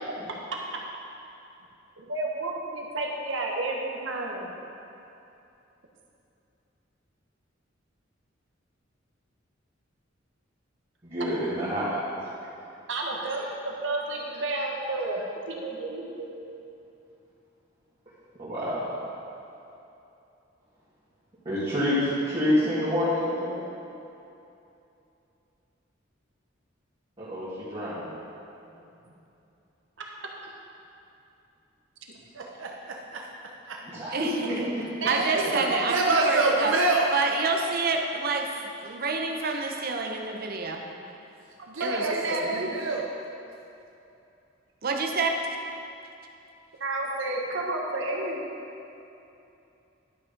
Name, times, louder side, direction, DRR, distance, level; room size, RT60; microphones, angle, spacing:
voice 1, 2.0-4.5 12.9-16.3 34.4-34.6 35.0-36.6 41.8-42.7 46.8-48.4, right 2 dB, 70° right, -1 dB, 1.3 m, -30 dB
voice 2, 11.0-12.0 18.4-18.9 21.5-23.6 27.2-28.1 28.7-28.8 33.8-34.9, left 1 dB, 30° right, -12 dB, 2.1 m, -28 dB
voice 3, 32.3-32.7 35.4-35.5 35.9-37.1 41.7-43.1, right 3 dB, 85° right, -1 dB, 0.8 m, -26 dB
voice 4, 34.1-34.7 35.1-36.7 37.1-40.9 41.8-42.0 42.4-42.6 44.8-45.3, right 4 dB, 50° right, 2 dB, 0.9 m, -28 dB
11.0 x 6.2 x 5.2 m, 2.8 s
head